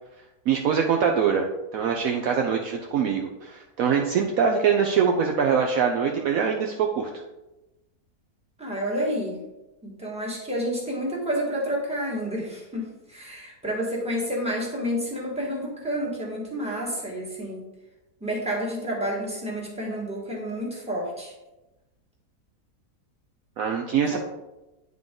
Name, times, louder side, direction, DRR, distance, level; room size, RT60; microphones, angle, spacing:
voice 1, 0.5-1.5 1.7-7.1 23.6-24.2, right 6 dB, 70° right, 2 dB, 1.0 m, -23 dB
voice 2, 8.6-9.4 9.8-17.6 18.2-21.3 24.1-24.2, equal, 5° right, -4 dB, 1.5 m, -29 dB
9.3 x 3.7 x 3.8 m, 1.0 s
omnidirectional pair, 1.7 m